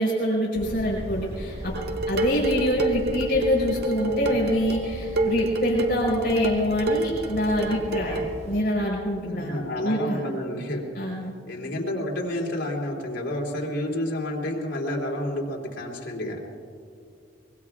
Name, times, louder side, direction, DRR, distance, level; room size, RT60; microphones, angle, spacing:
voice 1, 0.0-1.7 2.1-10.2 11.0-11.3, equal, 50° left, -4 dB, 5.2 m, -25 dB
sound 1, 0.5-8.6, equal, 35° right, 1.7 m, -37 dB
Dishes pots and pans, 1.8-8.4, right 2 dB, 55° right, 0.6 m, -28 dB
voice 2, 9.3-11.1 11.5-16.4, left 1 dB, 75° left, -3 dB, 3.3 m, -30 dB
24.0 x 23.5 x 2.4 m, 2.3 s
head